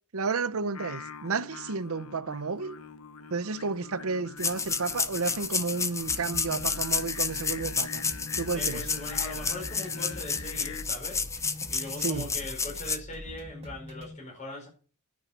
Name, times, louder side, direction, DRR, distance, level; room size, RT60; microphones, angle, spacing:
voice 1, 0.1-2.8 3.3-8.0 8.4-8.8 12.0-12.3, right 4 dB, 70° right, 0.8 m, -31 dB
Singing, 0.7-10.8, left 6 dB, 75° left, 0.9 m, -44 dB
sound 1, 4.4-13.0, left 5 dB, 15° left, 0.7 m, -31 dB
sound 2, 6.1-14.1, equal, 30° right, 2.7 m, -43 dB
voice 2, 8.5-11.2 11.7-14.7, left 1 dB, 35° left, 5.1 m, -40 dB
10.0 x 8.7 x 7.3 m
head